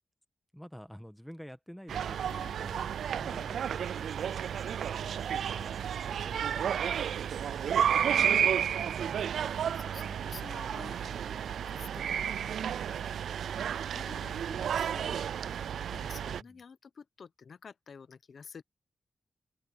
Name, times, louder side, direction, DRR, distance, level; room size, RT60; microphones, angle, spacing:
voice 1, 0.5-2.9 3.1-4.5 5.0-5.8 6.1-6.9 7.2-8.3 8.7-9.5 16.3-16.6, equal, ahead, 1.4 m, -50 dB
sound 1, 1.9-16.4, right 8 dB, 85° right, 0.3 m, -32 dB
voice 2, 2.3-2.6 6.1-6.3 8.1-8.3 9.1-9.2 9.6-12.6 12.9-13.3 13.6-18.6, left 6 dB, 60° left, 1.0 m, -51 dB
sound 2, 3.0-8.1, right 2 dB, 25° right, 3.1 m, -62 dB
open air
cardioid pair, 85°, 0 cm